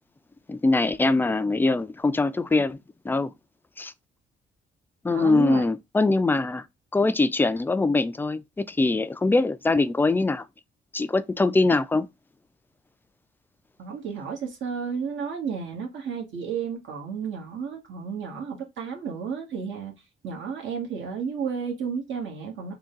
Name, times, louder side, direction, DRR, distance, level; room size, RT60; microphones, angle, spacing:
voice 1, 0.5-3.3 3.8-3.9 5.0-6.7 6.9-10.5 10.9-12.1, left 3 dB, 10° left, 0.3 m, -23 dB
voice 2, 5.1-5.6 13.8-19.9 20.2-22.7, right 6 dB, 70° right, 1.5 m, -32 dB
3.7 x 2.3 x 3.8 m
cardioid pair, 90°, 20 cm